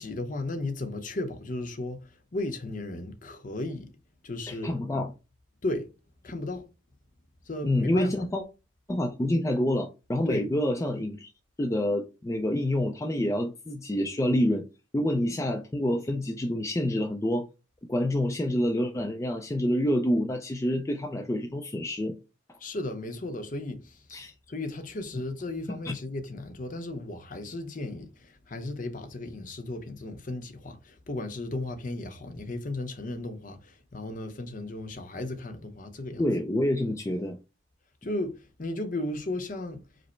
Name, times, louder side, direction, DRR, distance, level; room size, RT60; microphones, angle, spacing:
voice 1, 0.0-2.0 2.3-3.9 4.2-4.8 5.6-5.9 6.2-6.6 7.5-8.1 10.3-10.5 22.6-24.0 24.5-36.3 38.0-39.8, left 2 dB, 40° left, 0.7 m, -35 dB
voice 2, 4.5-5.1 7.6-8.4 8.9-11.3 11.6-14.7 14.9-17.5 17.9-22.1 24.1-24.3 25.7-25.9 36.2-37.4, left 1 dB, 15° left, 0.3 m, -27 dB
5.0 x 2.0 x 4.3 m
head